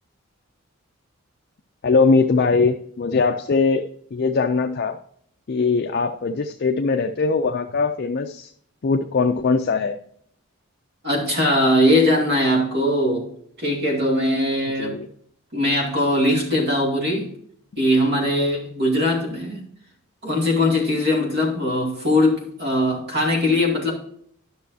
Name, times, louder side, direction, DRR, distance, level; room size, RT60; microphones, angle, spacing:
voice 1, 1.8-3.8 4.1-5.0 5.5-8.5 8.8-10.0 14.8-15.1, left 4 dB, 45° left, 5 dB, 0.4 m, -21 dB
voice 2, 11.0-13.3 13.6-14.9 15.5-17.3 17.8-19.6 20.2-23.9, left 1 dB, 50° right, -1 dB, 2.4 m, -20 dB
11.5 x 6.2 x 2.7 m, 0.66 s
head